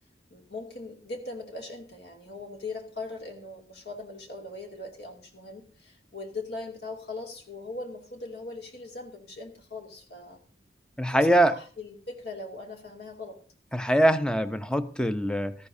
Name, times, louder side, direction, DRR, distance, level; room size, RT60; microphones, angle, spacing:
voice 1, 0.3-10.4 11.1-13.4, left 3 dB, 65° left, 2 dB, 2.5 m, -40 dB
voice 2, 11.0-11.5 13.7-15.5, right 1 dB, 5° left, 10 dB, 0.6 m, -23 dB
17.0 x 14.0 x 2.7 m, 0.40 s
head